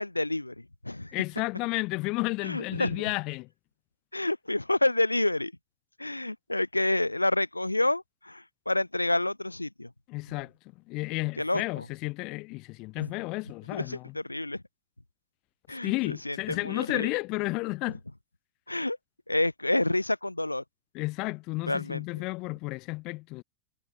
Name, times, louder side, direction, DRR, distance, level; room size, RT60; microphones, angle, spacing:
voice 1, 0.0-1.2 2.4-3.0 4.1-5.5 6.0-9.9 11.4-11.8 13.0-13.1 13.7-14.6 15.7-17.1 18.7-19.0 19.3-20.6 21.7-22.2, left 2 dB, 85° left, 3.1 m, -29 dB
voice 2, 1.1-3.5 10.1-14.1 15.7-18.0 20.9-23.4, left 24 dB, 40° left, 1.6 m, -32 dB
figure-of-eight pair, 90°, 0 cm